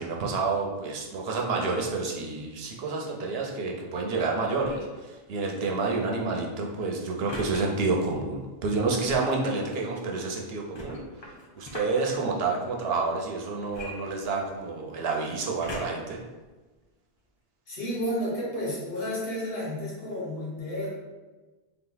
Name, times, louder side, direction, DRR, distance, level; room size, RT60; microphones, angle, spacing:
voice 1, 0.0-11.0 11.5-16.2, right 3 dB, 75° right, 0 dB, 0.9 m, -29 dB
sound 1, 4.6-5.0 7.3-7.6 9.0-9.4 10.7-12.0 13.7-14.7 15.6-16.1 16.8-16.9, left 1 dB, 30° left, 0.6 m, -40 dB
voice 2, 17.7-20.9, equal, 65° left, -5 dB, 1.5 m, -31 dB
3.7 x 2.9 x 3.9 m, 1.2 s
omnidirectional pair, 1.0 m